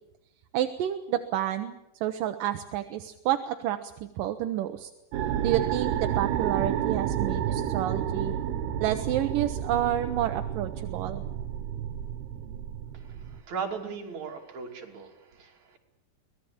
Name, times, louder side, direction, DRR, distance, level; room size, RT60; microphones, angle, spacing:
voice 1, 0.5-4.9 5.4-8.3 8.8-11.2, right 12 dB, 70° right, 7 dB, 2.4 m, -29 dB
sound 1, 5.1-13.4, right 10 dB, 85° right, 3.2 m, -30 dB
voice 2, 12.9-15.8, right 5 dB, 50° right, 1 dB, 4.1 m, -38 dB
24.5 x 19.0 x 8.7 m, 0.88 s
omnidirectional pair, 4.5 m